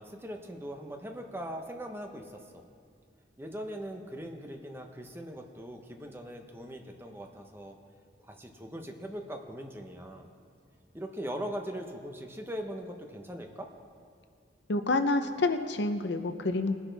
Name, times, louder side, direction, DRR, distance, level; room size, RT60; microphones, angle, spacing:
voice 1, 0.0-2.6 3.4-7.8 8.2-10.3 10.9-13.7, equal, 10° right, 3 dB, 0.9 m, -40 dB
voice 2, 14.7-16.7, left 2 dB, 65° left, 8 dB, 0.7 m, -28 dB
21.0 x 10.0 x 3.4 m, 2.1 s
head